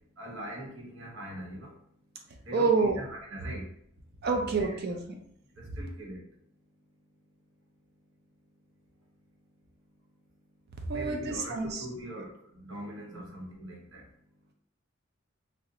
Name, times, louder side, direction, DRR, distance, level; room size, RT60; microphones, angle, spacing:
voice 1, 0.2-1.8 2.4-3.7 4.3-4.8 5.6-6.2 10.9-14.1, right 1 dB, 85° right, -2 dB, 0.9 m, -42 dB
voice 2, 2.5-3.0 4.2-5.2 5.7-5.8 10.9-11.8 13.1-13.3, right 4 dB, 55° right, 3 dB, 0.5 m, -28 dB
2.6 x 2.1 x 3.8 m, 0.69 s
head